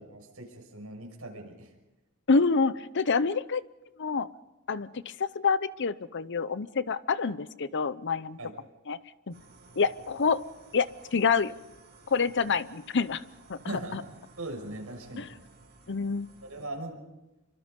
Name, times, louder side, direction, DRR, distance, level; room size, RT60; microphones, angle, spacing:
voice 1, 0.0-1.7 8.4-8.5 13.7-14.0 14.4-15.3 16.4-17.0, right 1 dB, 70° right, 2 dB, 6.1 m, -39 dB
voice 2, 2.3-3.6 4.0-4.3 4.7-8.4 8.9-9.0 9.3-9.4 9.8-10.4 10.7-11.5 12.1-13.2 13.5-13.6 13.9-14.0 15.2-15.3 15.9-16.3, left 5 dB, 55° left, 16 dB, 0.8 m, -27 dB
sound 1, 9.3-16.7, right 3 dB, 50° right, 7.6 m, -56 dB
26.5 x 24.5 x 5.3 m, 1.0 s
head